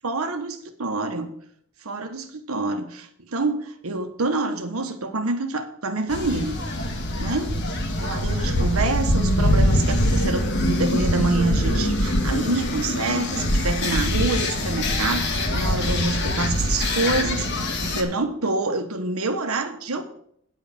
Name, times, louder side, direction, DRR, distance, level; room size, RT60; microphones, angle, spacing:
voice 1, 0.0-1.3 1.8-6.6 7.1-7.5 8.0-20.0, right 3 dB, 90° right, 6 dB, 1.3 m, -27 dB
sound 1, 6.1-18.0, left 1 dB, 55° left, 1.4 m, -23 dB
10.0 x 5.2 x 7.0 m, 0.66 s
head